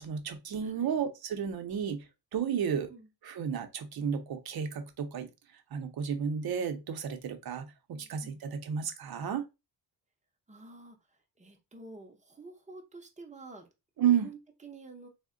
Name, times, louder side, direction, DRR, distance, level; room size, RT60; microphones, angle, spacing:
voice 1, 0.0-2.0 2.3-2.9 3.2-5.3 5.7-9.4 14.0-14.3, right 8 dB, 55° right, 0.7 m, -32 dB
voice 2, 0.6-0.9 2.9-3.1 7.9-8.4 10.5-11.0 11.4-13.7 14.1-15.1, right 3 dB, 15° right, 0.6 m, -49 dB
3.5 x 2.1 x 3.6 m
wide cardioid pair, 175°, 43 cm